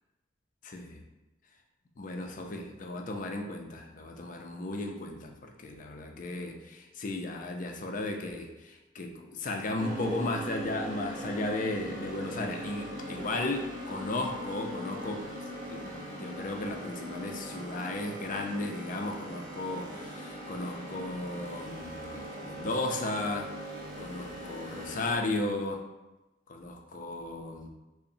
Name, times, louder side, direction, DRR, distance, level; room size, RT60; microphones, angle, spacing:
voice 1, 0.6-1.0 2.0-15.2 15.7-23.5 24.0-25.8 26.5-27.7, left 2 dB, 40° left, 3 dB, 0.4 m, -35 dB
sound 1, 9.8-25.1, equal, 40° right, 0.6 m, -40 dB
5.3 x 2.1 x 2.6 m, 1.0 s
head